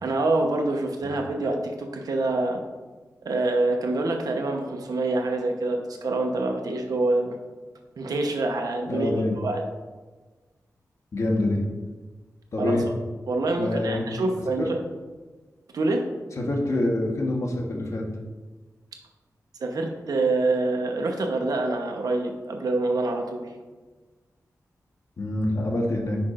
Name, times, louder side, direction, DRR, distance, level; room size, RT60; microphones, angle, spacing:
voice 1, 0.0-2.6 3.2-7.4 8.0-9.6 12.6-12.7 13.3-14.8 15.7-16.0 19.6-23.5, right 2 dB, 85° right, 3 dB, 1.0 m, -26 dB
voice 2, 8.9-9.4 11.1-11.6 12.5-12.8 13.6-14.0 14.6-14.7 16.4-18.0 25.2-26.2, left 1 dB, 50° left, 1 dB, 1.2 m, -26 dB
10.0 x 5.9 x 2.5 m, 1.3 s
wide cardioid pair, 125°, 6 cm